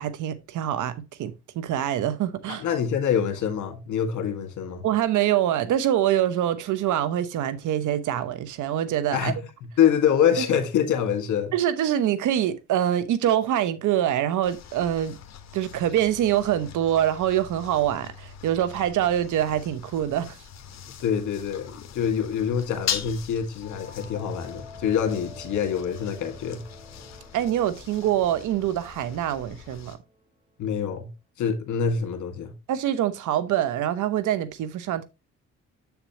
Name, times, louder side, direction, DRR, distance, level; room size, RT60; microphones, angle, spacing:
voice 1, 0.0-2.6 4.8-9.3 10.4-10.5 11.5-15.2 15.5-20.4 27.3-30.0 32.7-35.0, right 11 dB, 80° right, 0.9 m, -25 dB
voice 2, 2.5-4.9 9.1-9.4 9.8-11.5 21.0-26.6 30.6-31.1 31.4-32.5, left 8 dB, 75° left, 1.9 m, -25 dB
sound 1, 14.4-30.0, left 8 dB, 60° left, 1.4 m, -40 dB
sound 2, 23.6-30.1, equal, 25° right, 3.2 m, -48 dB
7.4 x 6.9 x 2.9 m
cardioid pair, 90°, 30 cm